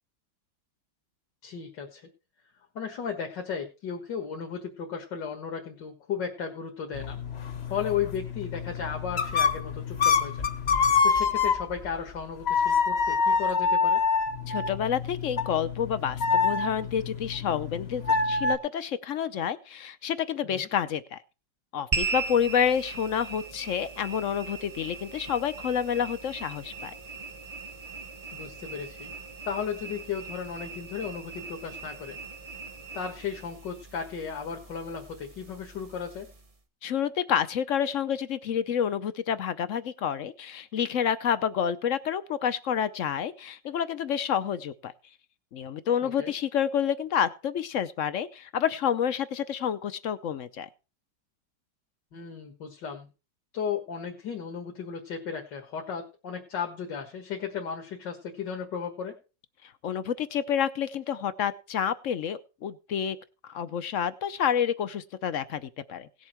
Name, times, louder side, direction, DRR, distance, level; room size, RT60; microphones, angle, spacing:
voice 1, 1.4-2.1 2.8-7.2 7.7-10.4 11.0-14.0 20.4-20.7 28.3-29.1 29.4-32.2 32.9-36.3 46.0-46.3 52.1-53.1 53.5-59.1, left 7 dB, 75° left, 2 dB, 2.3 m, -35 dB
sound 1, 6.9-11.9 12.5-18.6, left 5 dB, 40° left, 1.1 m, -26 dB
voice 2, 14.5-21.2 21.7-26.9 36.8-44.9 45.5-50.7 59.8-63.2 63.4-66.1, left 8 dB, 60° left, 14 dB, 0.9 m, -29 dB
sound 2, 21.9-36.5, right 4 dB, 25° right, 0.8 m, -39 dB
17.5 x 7.3 x 4.5 m, 0.33 s
omnidirectional pair, 1.9 m